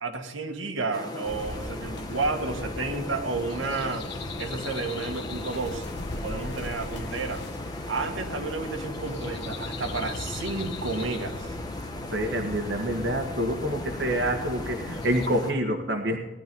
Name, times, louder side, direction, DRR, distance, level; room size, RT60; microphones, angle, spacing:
voice 1, 0.0-4.1 4.4-5.9 6.2-7.4 7.9-11.5, right 3 dB, 75° right, 4 dB, 1.9 m, -31 dB
sound 1, 0.9-15.5, left 2 dB, 20° left, 1.5 m, -38 dB
sound 2, 1.2-15.3, left 2 dB, 60° left, 1.2 m, -39 dB
voice 2, 12.1-16.2, right 1 dB, 60° right, 2 dB, 1.6 m, -27 dB
18.0 x 12.0 x 5.5 m, 1.0 s
head